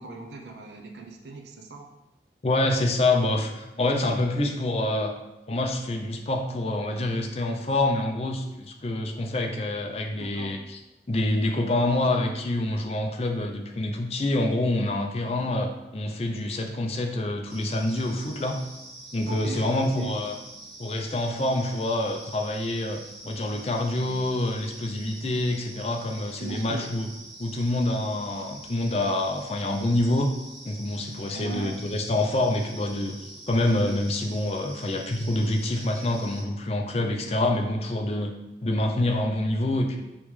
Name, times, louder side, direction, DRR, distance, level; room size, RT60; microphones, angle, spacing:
voice 1, 0.0-1.9 10.1-10.6 15.4-15.6 19.3-20.2 26.3-26.9 31.3-31.9, right 3 dB, 75° right, 2 dB, 0.6 m, -39 dB
voice 2, 2.4-5.2 5.5-10.8 11.1-18.6 19.1-20.4 20.8-27.1 27.4-30.3 30.7-33.2 33.5-38.4 38.6-40.0, left 1 dB, 35° left, 3 dB, 0.4 m, -26 dB
sound 1, 17.5-36.4, right 1 dB, 5° left, 1.6 m, -45 dB
5.3 x 3.1 x 3.2 m, 0.97 s
head